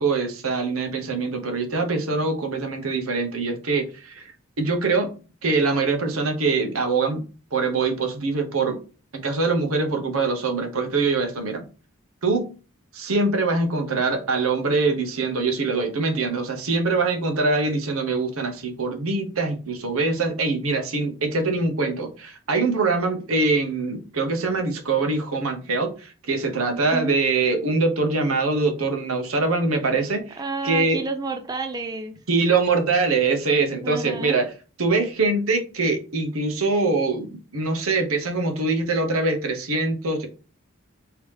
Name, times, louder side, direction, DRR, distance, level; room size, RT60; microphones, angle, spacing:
voice 1, 0.0-4.3 4.6-5.1 5.4-7.2 7.5-8.8 9.1-11.6 12.2-12.5 12.9-31.0 32.3-34.5 34.8-40.3, right 3 dB, 90° right, 5 dB, 0.9 m, -23 dB
voice 2, 26.7-27.1 30.4-32.1 33.8-34.4, right 3 dB, 20° right, 5 dB, 0.3 m, -30 dB
3.3 x 2.9 x 3.2 m, 0.35 s
head